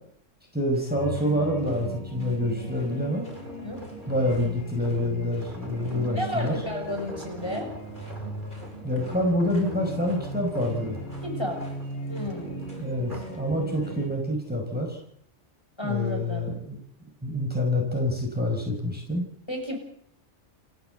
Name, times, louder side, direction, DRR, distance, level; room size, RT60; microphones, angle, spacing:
voice 1, 0.5-3.3 4.1-6.6 8.8-11.0 12.8-15.0 15.8-16.8 17.2-19.2, left 1 dB, 5° right, 1 dB, 5.5 m, -27 dB
sound 1, 0.7-14.1, right 1 dB, 40° left, 6.5 m, -38 dB
sound 2, 3.2-13.5 13.9-14.2, right 1 dB, 40° right, 3.4 m, -46 dB
voice 2, 6.1-7.7 11.2-11.6 12.1-12.7 15.8-16.4 19.5-19.8, left 1 dB, 20° left, 2 dB, 6.7 m, -32 dB
29.5 x 11.5 x 8.2 m, 0.64 s
omnidirectional pair, 1.3 m